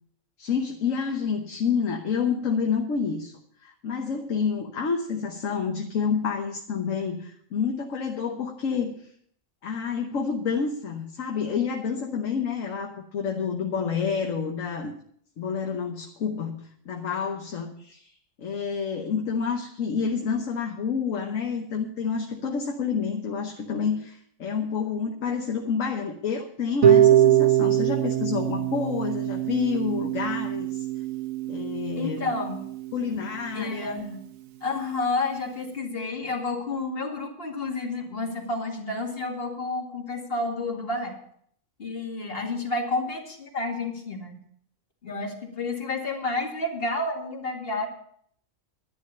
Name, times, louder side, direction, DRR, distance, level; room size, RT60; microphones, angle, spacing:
voice 1, 0.4-9.1 9.6-14.9 15.4-18.1 18.4-30.9 31.5-32.3 32.9-34.1, left 6 dB, 75° left, 2 dB, 1.4 m, -29 dB
Harp, 26.8-32.9, right 11 dB, 75° right, 1.3 m, -22 dB
voice 2, 32.0-32.6 33.5-34.2 34.6-41.2 41.8-44.4 45.0-47.9, left 2 dB, 45° left, 2 dB, 2.3 m, -30 dB
11.5 x 10.5 x 5.6 m, 0.64 s
omnidirectional pair, 1.4 m